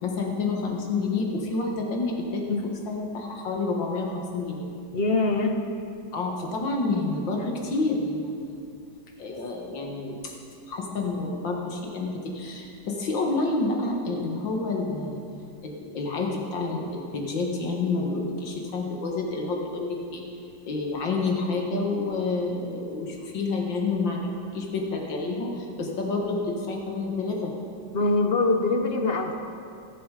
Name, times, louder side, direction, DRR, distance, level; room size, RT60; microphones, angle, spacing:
voice 1, 0.0-4.7 6.1-8.5 9.2-10.3 10.7-15.2 15.6-20.3 20.6-24.2 24.5-27.6, left 3 dB, 75° left, 0 dB, 2.4 m, -29 dB
voice 2, 4.9-5.6 27.9-29.3, left 3 dB, 45° left, 4 dB, 0.8 m, -23 dB
21.5 x 7.3 x 4.9 m, 2.5 s
omnidirectional pair, 2.1 m